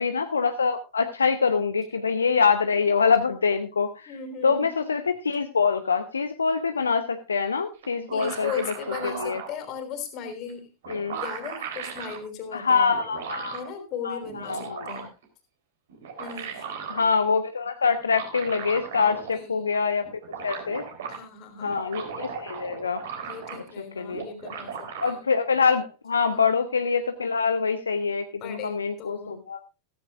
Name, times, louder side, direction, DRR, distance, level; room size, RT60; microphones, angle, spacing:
voice 1, 0.0-4.1 4.4-8.7 9.0-9.4 10.9-11.2 12.5-13.6 14.0-14.9 16.9-20.9 21.6-23.0 23.5-23.6 24.0-24.3 25.0-29.6, left 5 dB, 75° left, 9 dB, 0.8 m, -25 dB
voice 2, 4.1-4.7 8.1-10.7 11.2-12.9 13.5-15.1 16.2-16.7 19.1-19.6 21.1-21.8 23.2-25.2 26.3-26.4 28.4-29.4, left 6 dB, 40° left, 6 dB, 3.6 m, -37 dB
sound 1, 7.8-9.5 10.5-10.6 10.8-12.2 12.9-13.7 14.2-15.2 15.9-17.1 18.0-19.4 19.7-19.8 20.0-21.2 21.6-23.8 24.1-25.1, right 6 dB, 60° right, 3.6 m, -37 dB
15.0 x 15.0 x 2.4 m, 0.27 s
figure-of-eight pair, 90°, 0 cm